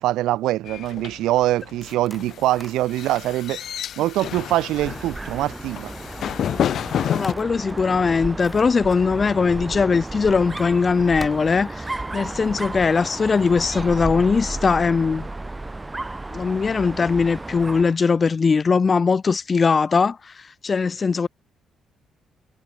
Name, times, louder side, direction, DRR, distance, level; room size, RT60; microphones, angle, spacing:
voice 1, 0.0-3.6 4.0-5.9, right 15 dB, 90° right, 1.7 m, -23 dB
sound 1, 0.7-7.3, left 10 dB, 65° left, 3.1 m, -29 dB
sound 2, 1.6-4.8 5.4-6.3 6.8-7.0 7.2-9.6 10.0-10.1 10.5-10.8 11.1-11.3, left 1 dB, 5° left, 7.1 m, -46 dB
Dog, 4.7-18.0, right 2 dB, 15° right, 5.1 m, -33 dB
voice 2, 7.1-15.3 16.3-21.3, left 5 dB, 35° left, 0.4 m, -20 dB
cardioid pair, 90°, 0 cm